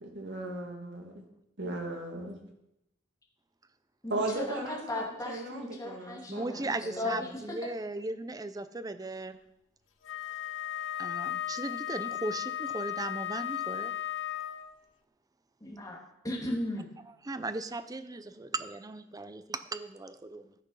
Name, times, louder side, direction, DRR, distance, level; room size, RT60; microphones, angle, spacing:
voice 1, 0.0-1.2 1.6-2.4 4.1-7.3, right 2 dB, 65° right, 1 dB, 2.3 m, -37 dB
voice 2, 4.0-7.4 15.6-16.0 16.2-16.9, left 1 dB, 20° left, -3 dB, 2.4 m, -36 dB
voice 3, 6.3-9.4 11.0-13.9 17.2-20.5, right 2 dB, 20° right, 12 dB, 0.5 m, -37 dB
Wind instrument woodwind instrument, 10.0-14.7, left 11 dB, 70° left, 0.7 m, -35 dB
14.0 x 6.0 x 5.5 m, 0.85 s
head